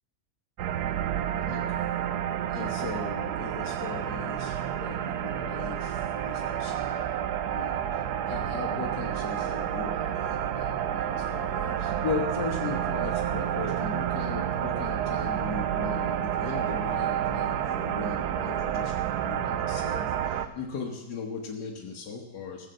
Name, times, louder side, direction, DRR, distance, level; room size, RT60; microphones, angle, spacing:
sound 1, 0.6-20.5, right 10 dB, 80° right, 1.3 m, -30 dB
voice 1, 1.5-2.0 2.5-7.2 7.5-22.7, left 5 dB, 85° left, 0 dB, 1.9 m, -38 dB
15.0 x 7.4 x 7.8 m, 1.0 s
omnidirectional pair, 1.7 m